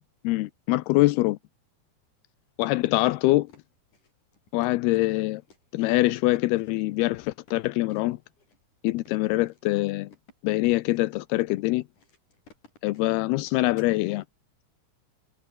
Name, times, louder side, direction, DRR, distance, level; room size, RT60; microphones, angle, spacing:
voice 1, 0.2-1.4 2.6-3.5 4.5-5.4 5.7-8.2 8.8-10.1 10.4-11.8 12.8-14.2, left 19 dB, 85° left, 2.7 m, -24 dB
sound 1, 3.4-14.0, left 4 dB, 50° left, 7.3 m, -57 dB
omnidirectional pair, 4.5 m